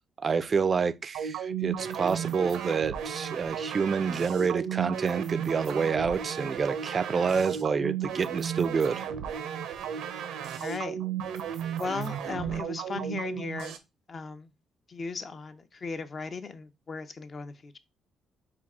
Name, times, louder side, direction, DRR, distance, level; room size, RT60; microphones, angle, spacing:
voice 1, 0.2-9.1, right 5 dB, 40° right, 0.3 m, -28 dB
sound 1, 1.1-13.8, right 8 dB, 90° right, 0.6 m, -34 dB
voice 2, 10.6-11.0 11.8-13.7 14.1-14.5 14.9-17.8, left 4 dB, 40° left, 0.5 m, -37 dB
4.6 x 2.4 x 3.6 m
cardioid pair, 90°, 0 cm